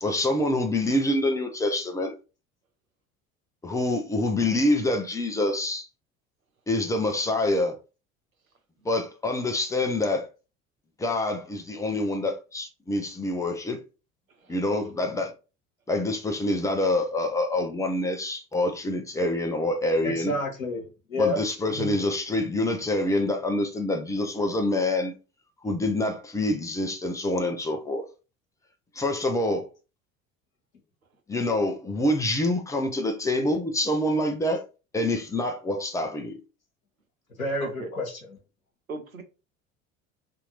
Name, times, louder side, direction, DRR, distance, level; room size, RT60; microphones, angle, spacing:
voice 1, 0.0-2.1 3.6-5.9 6.7-7.8 8.8-10.3 11.0-13.8 14.5-15.3 15.9-20.3 21.2-25.1 25.6-28.1 28.9-29.7 31.3-34.7 34.9-36.4, left 1 dB, 10° left, 0.6 m, -26 dB
voice 2, 20.0-21.4 21.7-22.0 37.4-38.4, left 1 dB, 85° left, 0.9 m, -30 dB
voice 3, 37.6-37.9 38.9-39.2, right 4 dB, 90° right, 0.6 m, -38 dB
2.9 x 2.6 x 3.9 m
figure-of-eight pair, 65°, 40 cm